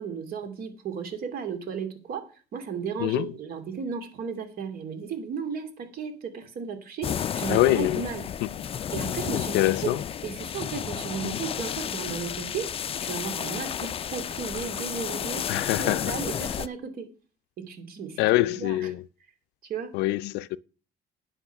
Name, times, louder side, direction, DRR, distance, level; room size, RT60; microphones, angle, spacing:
voice 1, 0.0-2.2 2.5-8.2 8.9-9.9 10.2-12.7 13.0-15.4 15.8-17.1 17.7-18.9 19.6-19.9, right 6 dB, 60° right, 2.6 m, -34 dB
sound 1, 7.0-16.7, left 8 dB, 35° left, 0.4 m, -32 dB
voice 2, 7.5-8.0 9.3-10.0 11.2-11.4 15.5-16.1 18.2-19.0 19.9-20.6, left 17 dB, 90° left, 0.5 m, -24 dB
10.5 x 6.5 x 5.9 m
cardioid pair, 110°, 17 cm